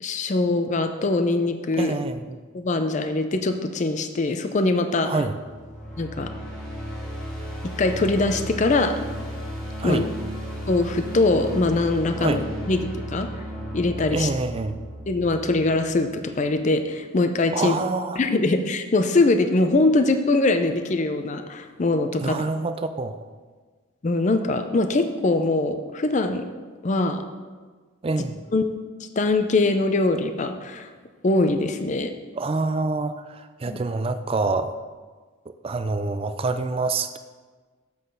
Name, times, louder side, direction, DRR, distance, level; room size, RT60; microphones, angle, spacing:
voice 1, 0.0-1.9 2.5-5.1 6.0-6.3 7.8-8.9 9.8-10.0 10.7-13.3 13.7-14.3 15.1-17.8 18.2-22.4 24.0-26.4 26.8-27.2 28.5-28.7 29.2-30.9 31.2-32.1 33.7-33.8, left 2 dB, 35° left, 7 dB, 0.4 m, -22 dB
voice 2, 1.8-2.4 5.0-5.4 9.8-10.1 12.2-12.4 14.1-14.8 17.5-18.2 22.2-23.2 28.0-28.4 32.4-34.8 35.6-37.2, right 3 dB, 25° right, 10 dB, 0.3 m, -26 dB
sound 1, 5.4-16.4, equal, 5° left, 1.3 m, -34 dB
7.5 x 4.0 x 6.7 m, 1.4 s
head